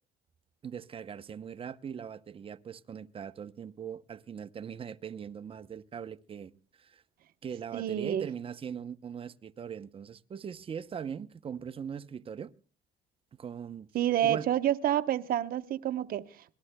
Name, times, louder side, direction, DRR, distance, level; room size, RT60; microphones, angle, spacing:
voice 1, 0.6-6.5 6.8-7.0 7.4-12.5 13.4-13.9 14.2-14.4, right 7 dB, 35° right, 0.7 m, -40 dB
voice 2, 7.7-8.3 13.9-16.6, right 11 dB, 60° right, 0.9 m, -29 dB
25.5 x 19.0 x 2.2 m
cardioid pair, 110°, 17 cm